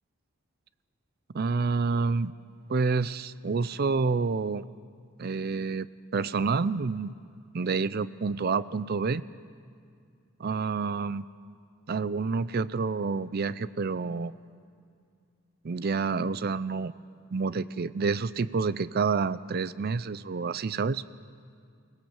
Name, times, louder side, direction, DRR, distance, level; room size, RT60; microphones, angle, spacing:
voice 1, 1.3-2.3 2.7-4.6 5.2-5.9 6.1-7.1 7.5-9.2 10.4-11.2 11.9-14.3 15.6-16.9 17.3-21.0, right 4 dB, 45° right, 17 dB, 0.4 m, -28 dB
24.0 x 18.0 x 7.3 m, 2.2 s
head